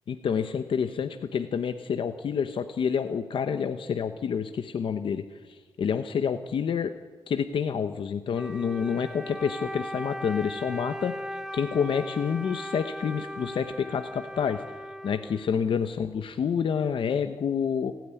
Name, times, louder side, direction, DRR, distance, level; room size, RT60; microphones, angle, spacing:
voice 1, 0.1-6.9 7.3-17.9, left 7 dB, 75° left, 8 dB, 0.9 m, -28 dB
Wind instrument woodwind instrument, 8.3-15.9, equal, 5° right, 1.0 m, -38 dB
28.0 x 9.4 x 9.9 m, 1.3 s
wide cardioid pair, 105°, 9 cm